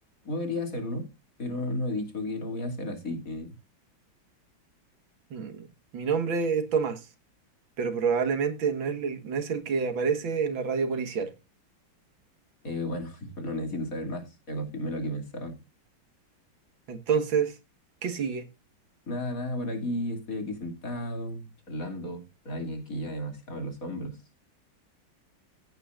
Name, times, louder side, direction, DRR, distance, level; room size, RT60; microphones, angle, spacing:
voice 1, 0.2-1.1 1.4-3.5 12.6-15.6 19.1-24.2, left 1 dB, 45° left, 3.1 m, -33 dB
voice 2, 5.3-5.7 5.9-7.1 7.8-11.3 16.9-17.6 18.0-18.5, right 6 dB, 75° right, 2.2 m, -28 dB
16.5 x 9.1 x 2.5 m
omnidirectional pair, 2.1 m